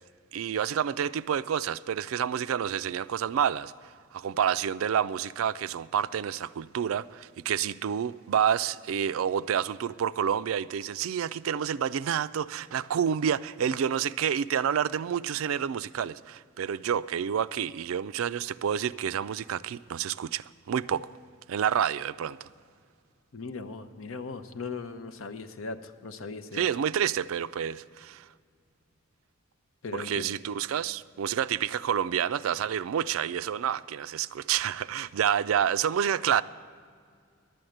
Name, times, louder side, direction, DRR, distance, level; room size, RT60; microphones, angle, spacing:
voice 1, 0.3-3.7 4.1-21.1 21.5-22.5 26.5-28.3 29.9-36.4, right 8 dB, 80° right, 0.3 m, -29 dB
voice 2, 23.3-26.7 29.8-30.3, left 4 dB, 75° left, 0.7 m, -38 dB
11.5 x 8.7 x 7.8 m
head